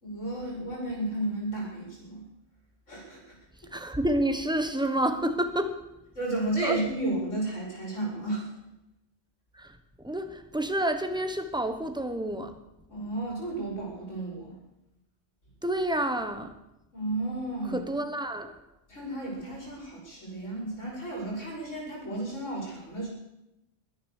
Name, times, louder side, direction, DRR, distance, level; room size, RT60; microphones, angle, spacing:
voice 1, 0.0-2.2 2.9-3.3 6.2-8.5 12.9-14.5 16.9-17.9 18.9-23.1, right 2 dB, 85° left, 5.7 m, -33 dB
voice 2, 3.6-5.9 6.6-6.8 9.5-12.6 15.6-16.6 17.7-18.6, right 1 dB, 5° right, 1.2 m, -29 dB
22.5 x 9.3 x 6.7 m
omnidirectional pair, 1.2 m